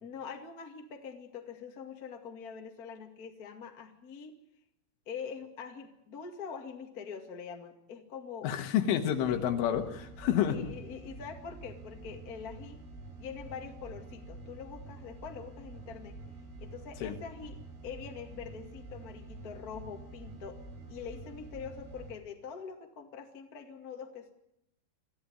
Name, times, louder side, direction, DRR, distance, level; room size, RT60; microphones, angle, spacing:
voice 1, 0.0-4.3 5.0-8.5 9.1-9.4 10.4-12.8 13.2-16.2 16.6-20.6 20.9-24.3, left 6 dB, 40° left, 4 dB, 1.3 m, -44 dB
voice 2, 8.4-10.6 17.0-17.2, left 10 dB, 85° left, 7 dB, 4.1 m, -29 dB
sound 1, 9.2-22.1, right 2 dB, 60° right, 6.0 m, -48 dB
25.5 x 14.5 x 9.3 m, 0.79 s
omnidirectional pair, 5.6 m